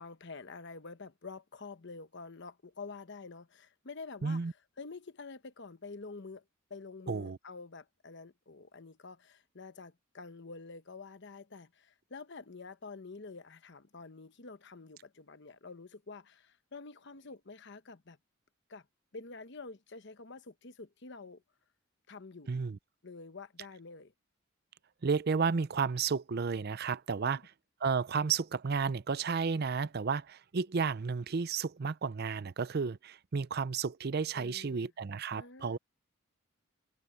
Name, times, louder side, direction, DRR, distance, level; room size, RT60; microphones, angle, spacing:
voice 1, 0.0-6.4 6.7-18.2 18.7-18.9 19.1-21.4 22.1-22.5 23.0-24.1 27.2-27.4 34.3-34.9 35.3-35.8, left 4 dB, 55° left, 1.0 m, -48 dB
voice 2, 4.2-4.5 7.1-7.4 22.5-22.8 25.0-27.4 27.8-35.8, right 5 dB, 50° right, 0.5 m, -32 dB
head